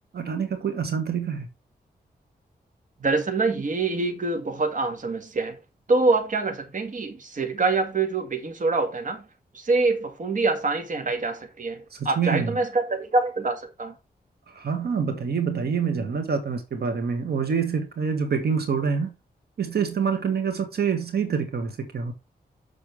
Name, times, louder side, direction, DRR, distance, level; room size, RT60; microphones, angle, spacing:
voice 1, 0.1-1.5 11.9-12.6 14.5-19.1 19.6-22.1, right 6 dB, 75° right, 2.1 m, -26 dB
voice 2, 3.0-5.6 5.9-9.2 9.5-13.9, right 3 dB, 50° right, 2.0 m, -25 dB
7.5 x 7.1 x 3.4 m
wide cardioid pair, 90°, 16 cm